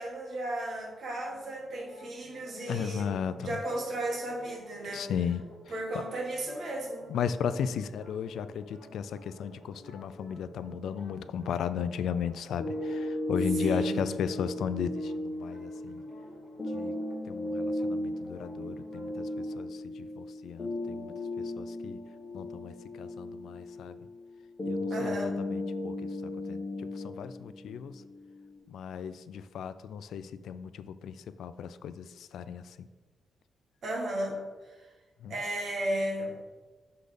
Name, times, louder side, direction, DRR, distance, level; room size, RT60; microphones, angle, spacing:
voice 1, 0.0-3.1 3.4-5.1 5.7-7.1 13.5-14.2 24.9-25.3 33.8-34.9 35.3-36.4, right 1 dB, 50° right, 0 dB, 1.4 m, -35 dB
sound 1, 1.2-19.6, equal, 5° right, 2.2 m, -53 dB
voice 2, 2.5-3.6 4.9-5.4 7.1-16.0 16.7-16.9 17.3-22.0 22.3-24.0 24.7-26.1 26.5-28.0 28.7-32.9 35.2-35.3, left 7 dB, 85° left, 13 dB, 0.3 m, -35 dB
sound 2, 12.6-28.6, left 1 dB, 30° left, 1.2 m, -36 dB
6.6 x 4.0 x 5.0 m, 1.3 s
wide cardioid pair, 150°, 0 cm